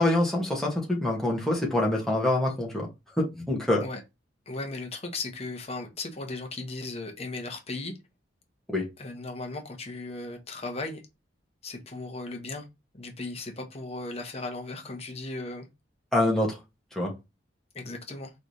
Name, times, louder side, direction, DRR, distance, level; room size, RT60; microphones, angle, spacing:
voice 1, 0.0-2.9 3.2-3.8 8.7-8.9 16.1-16.6 16.9-17.1, left 1 dB, ahead, 1.2 m, -25 dB
voice 2, 4.5-7.9 9.0-11.0 11.6-12.7 12.9-15.7 17.7-18.3, left 2 dB, 30° left, 1.0 m, -36 dB
4.8 x 3.3 x 2.7 m
head